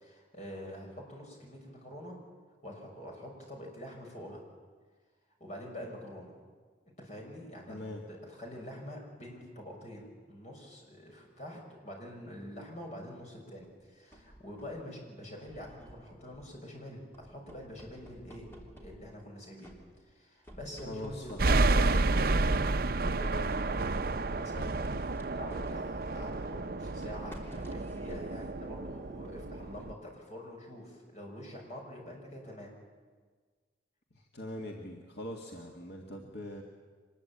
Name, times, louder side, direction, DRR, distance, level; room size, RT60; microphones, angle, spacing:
voice 1, 0.0-2.2 2.6-4.4 5.4-6.4 7.0-18.5 18.8-19.7 20.0-22.8 23.0-24.7 25.0-32.7, equal, 40° left, 0 dB, 6.3 m, -46 dB
voice 2, 7.7-8.0 20.8-21.4 34.1-36.6, left 1 dB, 65° left, 1 dB, 2.0 m, -42 dB
sound 1, 13.6-14.9 15.4-16.7 17.1-19.3 19.6-20.2 20.4-22.4 23.0-24.0 24.8-29.3, right 1 dB, 15° left, 3.3 m, -52 dB
sound 2, 21.4-29.9, right 2 dB, 55° right, 0.7 m, -30 dB
25.0 x 21.0 x 8.9 m, 1.5 s
head